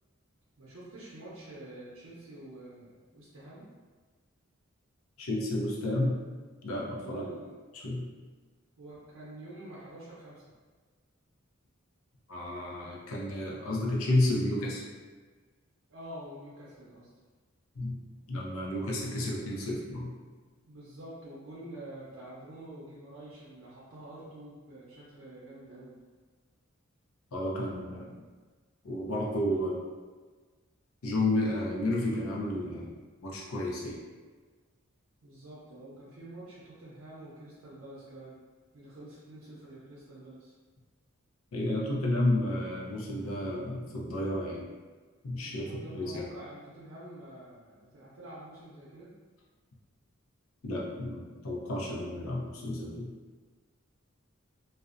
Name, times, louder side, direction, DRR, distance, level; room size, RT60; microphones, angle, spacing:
voice 1, 0.6-3.7 7.0-7.5 8.8-10.4 15.9-17.1 20.7-25.9 35.2-38.4 38.7-40.5 45.4-49.1, right 1 dB, 70° right, -8 dB, 0.6 m, -47 dB
voice 2, 5.2-6.2 6.6-7.2 7.7-8.1 12.3-14.8 17.8-18.0 18.3-20.1 27.3-28.2 28.8-29.9 31.0-32.9 33.2-34.0 41.5-44.7 45.2-45.7 45.9-46.3 50.6-53.1, left 1 dB, 90° left, -3 dB, 0.5 m, -31 dB
2.5 x 2.0 x 2.4 m, 1.4 s
head